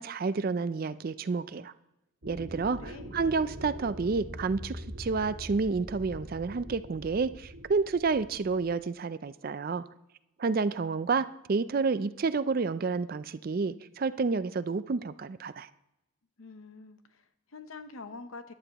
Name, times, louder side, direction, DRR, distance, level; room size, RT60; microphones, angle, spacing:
voice 1, 0.0-1.7 2.3-9.8 10.4-15.7, right 4 dB, 45° right, 14 dB, 0.4 m, -30 dB
sound 1, 2.2-8.8, equal, 75° right, 1.8 m, -43 dB
voice 2, 2.8-3.2 16.4-18.5, left 3 dB, 75° left, 10 dB, 0.8 m, -46 dB
14.5 x 11.5 x 3.0 m, 0.89 s
head